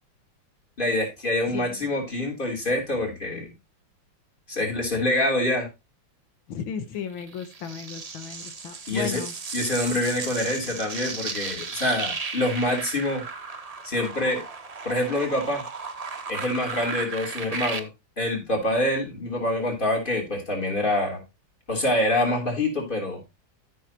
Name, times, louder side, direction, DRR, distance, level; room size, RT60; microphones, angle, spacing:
voice 1, 0.8-3.5 4.5-5.7 8.9-9.2 9.5-13.2 13.8-14.4 14.8-15.6 16.3-17.9 18.2-21.2 21.7-23.2, left 1 dB, 25° left, 0 dB, 3.5 m, -26 dB
voice 2, 1.5-1.9 6.5-9.3, left 7 dB, 85° left, 9 dB, 1.8 m, -35 dB
sound 1, 7.2-17.8, right 4 dB, 40° right, 0.5 m, -35 dB
13.0 x 6.4 x 2.9 m, 0.24 s
omnidirectional pair, 2.1 m